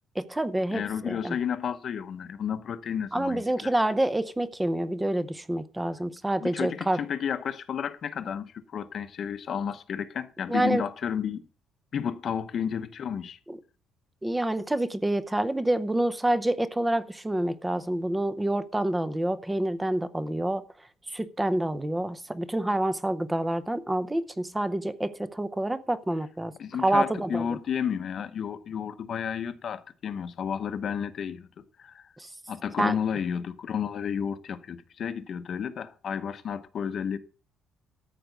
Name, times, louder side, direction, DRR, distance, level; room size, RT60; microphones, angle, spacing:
voice 1, 0.1-1.4 3.1-7.0 10.5-10.8 13.5-13.6 14.2-20.6 21.1-26.5 26.8-27.6 32.2-32.3 32.8-33.0, right 1 dB, 5° right, 0.6 m, -27 dB
voice 2, 0.7-3.7 6.4-11.4 11.9-13.4 26.6-32.1 32.5-37.2, left 8 dB, 40° left, 0.9 m, -32 dB
13.5 x 5.0 x 8.1 m
cardioid pair, 180°, 0 cm